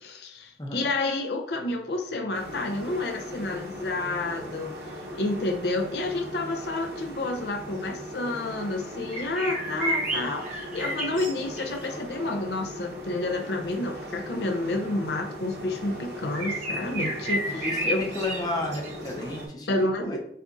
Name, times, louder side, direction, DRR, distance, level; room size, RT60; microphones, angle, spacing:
voice 1, 0.0-4.7 5.1-18.0 19.7-20.2, left 2 dB, 70° left, 3 dB, 0.5 m, -30 dB
sound 1, 2.3-19.5, equal, 65° right, 1.0 m, -39 dB
sound 2, 9.1-11.9 16.3-19.4, right 1 dB, 40° right, 1.0 m, -31 dB
voice 2, 17.5-19.7 20.0-20.2, left 2 dB, 20° left, 1 dB, 0.7 m, -32 dB
6.6 x 2.4 x 2.5 m, 0.71 s
head